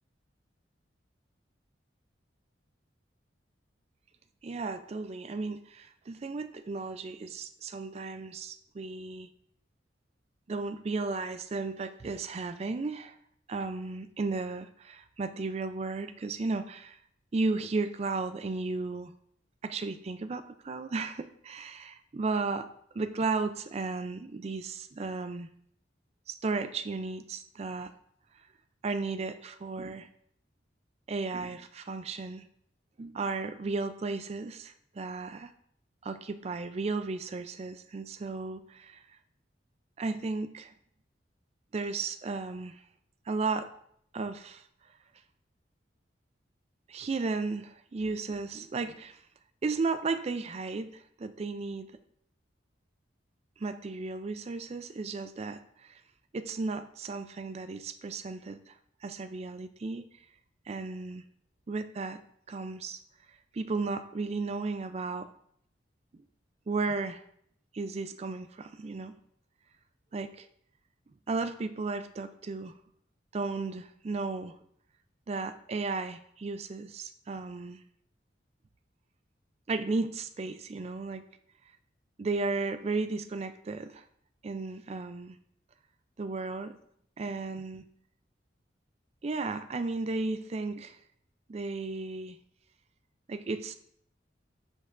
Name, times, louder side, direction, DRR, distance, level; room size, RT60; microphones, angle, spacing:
voice 1, 4.4-9.3 10.5-13.1 13.5-17.0 17.3-19.1 19.6-22.7 22.9-25.5 26.3-27.9 28.8-30.1 31.1-32.4 33.0-35.5 36.0-39.0 40.0-40.7 41.7-42.8 43.3-43.7 44.1-44.6 46.9-49.2 49.6-51.9 53.6-56.0 56.3-58.7 59.0-60.1 60.7-61.2 61.7-62.2 62.5-63.0 63.5-65.3 66.7-67.2 67.7-69.1 70.1-70.5 71.3-72.7 73.3-74.6 75.3-77.8 79.7-81.2 82.2-84.0 84.4-85.4 86.2-86.7 87.2-87.8 89.2-91.0 91.5-92.4 93.3-93.8, right 3 dB, 35° right, 11 dB, 0.4 m, -34 dB
9.5 x 5.3 x 2.5 m, 0.68 s
head